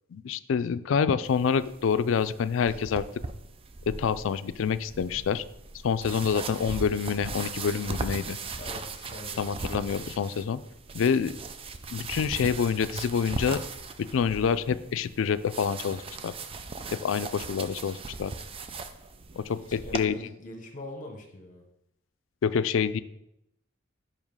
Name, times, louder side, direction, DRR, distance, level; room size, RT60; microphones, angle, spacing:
voice 1, 0.1-3.0 3.9-5.4 5.8-8.4 9.4-10.6 10.9-11.4 11.9-13.6 14.0-16.3 16.9-18.3 19.4-20.1 22.4-23.0, left 6 dB, 70° left, 14 dB, 0.4 m, -27 dB
sound 1, 1.2-20.1, right 4 dB, 30° right, 0.4 m, -39 dB
voice 2, 8.6-9.4 19.6-21.7, left 1 dB, 40° left, 3 dB, 0.9 m, -43 dB
5.6 x 5.0 x 5.4 m, 0.82 s
head